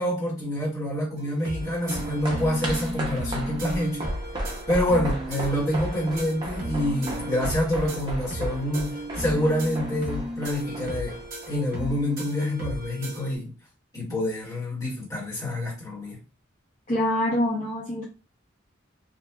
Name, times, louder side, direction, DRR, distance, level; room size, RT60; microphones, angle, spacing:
voice 1, 0.0-4.1 4.7-11.2 11.5-13.5 13.9-16.2, left 1 dB, 15° left, 1.3 m, -27 dB
sound 1, 1.2-13.4, equal, 45° right, 0.8 m, -35 dB
sound 2, 1.6-12.2 12.4-12.5, right 1 dB, 25° right, 0.6 m, -35 dB
voice 2, 16.9-18.0, left 1 dB, 35° left, 0.5 m, -25 dB
2.7 x 2.3 x 2.2 m
head